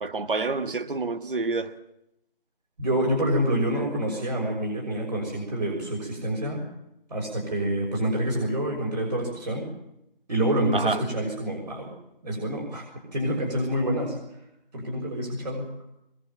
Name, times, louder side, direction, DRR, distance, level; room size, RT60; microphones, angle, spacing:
voice 1, 0.0-1.7 10.7-11.0, right 3 dB, 65° right, 1.7 m, -28 dB
voice 2, 2.8-6.6 7.1-9.7 10.3-11.9 12.2-14.2 14.7-15.7, right 1 dB, 45° right, 6.5 m, -27 dB
24.5 x 22.5 x 7.4 m
figure-of-eight pair, 175°, 29 cm